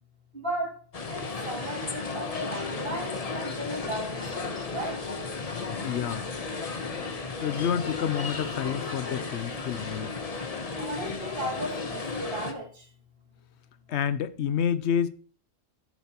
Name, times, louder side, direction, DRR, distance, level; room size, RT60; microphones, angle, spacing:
voice 1, 0.3-0.8 1.1-5.4 10.8-12.8, right 1 dB, 45° right, 2.6 m, -35 dB
sound 1, 0.9-12.5, left 4 dB, 35° left, 0.9 m, -34 dB
voice 2, 5.8-6.3 7.4-10.2 13.9-15.1, left 8 dB, 65° left, 0.8 m, -29 dB
10.5 x 7.0 x 2.9 m
omnidirectional pair, 1.4 m